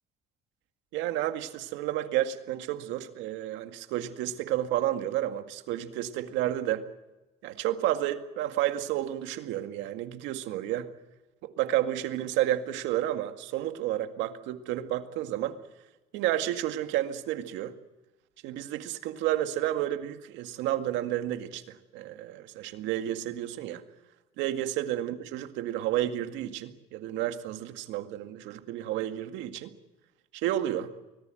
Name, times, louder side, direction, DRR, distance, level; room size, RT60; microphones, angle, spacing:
voice 1, 0.9-6.9 7.4-10.9 11.4-15.6 16.1-17.7 18.4-23.8 24.4-29.7 30.3-30.9, right 13 dB, 80° right, 2.0 m, -31 dB
24.5 x 19.0 x 7.7 m
supercardioid pair, 90°, 19 cm